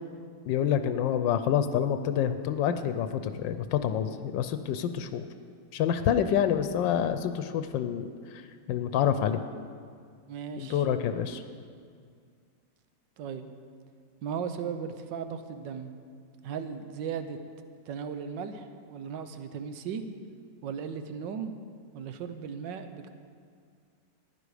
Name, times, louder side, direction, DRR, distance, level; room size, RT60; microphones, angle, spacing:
voice 1, 0.5-5.3 5.7-8.4 8.7-9.4 10.6-11.4, left 9 dB, 85° left, 10 dB, 1.3 m, -27 dB
voice 2, 10.3-10.8 13.2-13.5 14.2-15.9 16.4-17.4 17.9-20.0 20.6-21.5 21.9-23.1, right 7 dB, 80° right, 9 dB, 1.5 m, -36 dB
15.0 x 10.5 x 4.9 m, 2.1 s
omnidirectional pair, 2.0 m